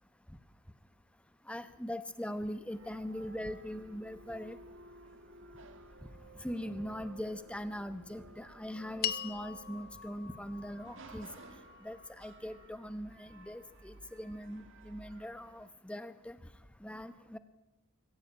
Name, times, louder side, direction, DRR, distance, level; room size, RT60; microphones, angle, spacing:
voice 1, 1.5-4.6 6.4-11.3 11.8-16.4 16.8-17.4, equal, 5° left, 11 dB, 0.9 m, -41 dB
sound 1, 2.7-15.7, right 2 dB, 60° right, 1.7 m, -55 dB
sound 2, 9.0-13.5, left 10 dB, 45° left, 0.6 m, -43 dB
21.5 x 15.0 x 8.7 m, 0.99 s
head